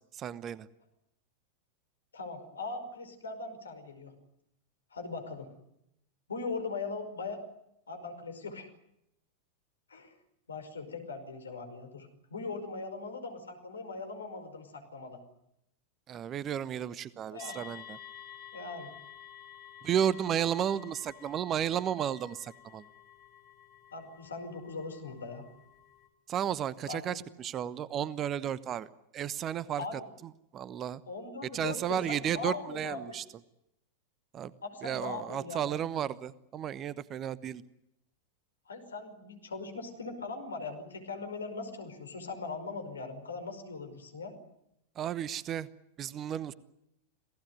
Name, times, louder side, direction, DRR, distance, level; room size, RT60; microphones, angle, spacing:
voice 1, 0.2-0.7 16.1-18.0 19.8-22.8 26.3-28.9 29.1-29.8 30.5-31.0 31.5-33.2 34.3-34.5 34.8-37.6 45.0-45.7 46.0-46.5, right 9 dB, 30° right, 19 dB, 1.0 m, -33 dB
voice 2, 2.1-4.1 4.9-5.5 6.3-7.4 7.9-8.7 9.9-10.1 10.5-15.2 17.3-17.6 18.5-18.9 23.9-25.5 26.9-27.3 29.8-30.1 31.1-33.2 34.6-35.8 38.7-44.3, left 3 dB, 70° left, 8 dB, 5.3 m, -40 dB
sound 1, 17.4-26.1, left 10 dB, 30° left, 5.8 m, -52 dB
27.5 x 18.5 x 9.5 m, 0.81 s
figure-of-eight pair, 90°, 0 cm